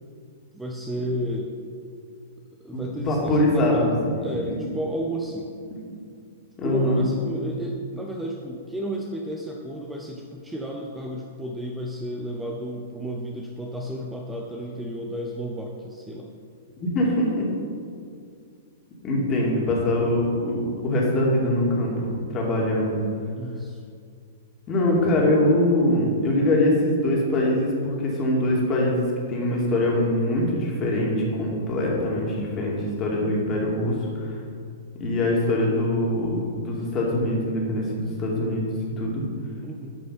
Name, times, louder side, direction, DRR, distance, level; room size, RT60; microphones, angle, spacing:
voice 1, 0.5-1.6 2.6-5.5 6.6-16.3 23.3-23.8 39.6-40.0, equal, 5° right, 0 dB, 0.8 m, -32 dB
voice 2, 2.7-4.1 6.6-7.0 16.8-17.5 19.0-23.0 24.7-34.3 35.0-39.2, left 1 dB, 25° left, -2 dB, 2.5 m, -23 dB
11.0 x 5.3 x 5.8 m, 2.3 s
figure-of-eight pair, 105°, 0 cm